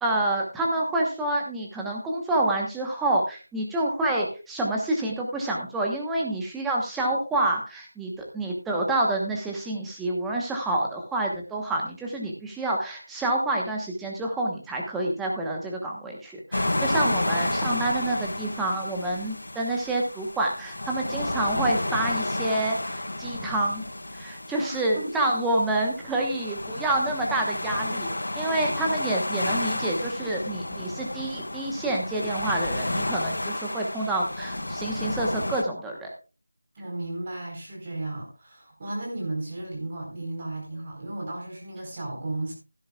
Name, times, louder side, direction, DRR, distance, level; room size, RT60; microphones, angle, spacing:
voice 1, 0.0-23.8 24.1-36.1, right 2 dB, 5° right, -1 dB, 1.1 m, -28 dB
sound 1, 16.5-35.6, left 1 dB, 70° left, 4.0 m, -31 dB
voice 2, 24.6-25.3 25.6-25.7 26.0-26.2 36.7-42.5, right 2 dB, 25° right, 0 dB, 4.1 m, -34 dB
16.0 x 10.5 x 2.4 m, 0.33 s
figure-of-eight pair, 175°, 0 cm